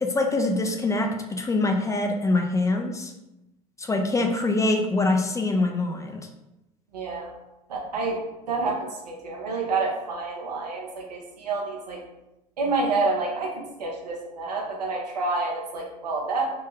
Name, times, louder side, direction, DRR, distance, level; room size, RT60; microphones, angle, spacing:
voice 1, 0.0-3.1 3.8-6.3, left 2 dB, 15° left, 4 dB, 0.4 m, -24 dB
voice 2, 6.9-7.3 7.7-8.2 8.5-12.0 12.6-16.5, right 3 dB, 85° right, 0 dB, 0.7 m, -28 dB
3.2 x 2.1 x 3.2 m, 0.93 s
hypercardioid pair, 75°, 20 cm